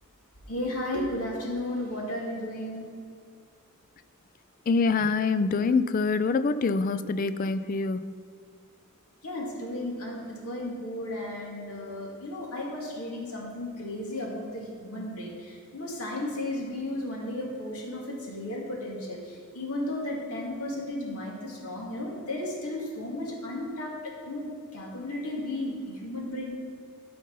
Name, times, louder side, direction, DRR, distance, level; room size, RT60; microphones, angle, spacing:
voice 1, 0.5-2.9 9.2-26.5, left 1 dB, 85° left, -2 dB, 2.4 m, -34 dB
voice 2, 4.7-8.0, left 4 dB, 40° left, 12 dB, 0.3 m, -25 dB
12.5 x 5.2 x 5.4 m, 2.3 s
head